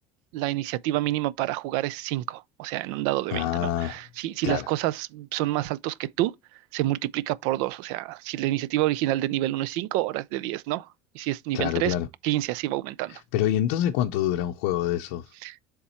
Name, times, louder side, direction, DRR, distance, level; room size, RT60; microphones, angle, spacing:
voice 1, 0.3-6.3 6.7-10.9 11.1-11.9 12.2-13.2 15.4-15.6, right 16 dB, 65° right, 0.4 m, -28 dB
voice 2, 3.3-4.0 4.4-4.7 11.5-12.1 13.1-15.3, left 11 dB, 85° left, 0.6 m, -26 dB
7.0 x 3.6 x 4.3 m
cardioid pair, 175°, 7 cm